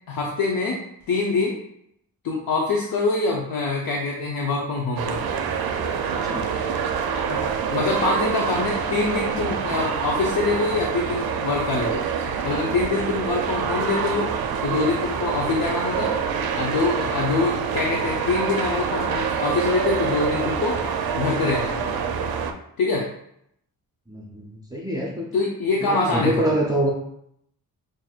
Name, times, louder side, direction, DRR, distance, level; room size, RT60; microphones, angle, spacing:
voice 1, 0.1-0.8 1.1-1.6 2.2-5.3 7.1-12.1 12.4-14.3 14.6-16.1 16.5-20.8 21.2-21.9 22.8-23.1 25.3-26.5, left 3 dB, 75° left, -1 dB, 0.6 m, -24 dB
sound 1, 5.0-22.5, right 6 dB, 75° right, 0.5 m, -26 dB
voice 2, 24.1-25.4 25.8-26.9, right 1 dB, 10° right, -3 dB, 0.4 m, -26 dB
5.7 x 2.5 x 2.3 m, 0.74 s
wide cardioid pair, 165°, 37 cm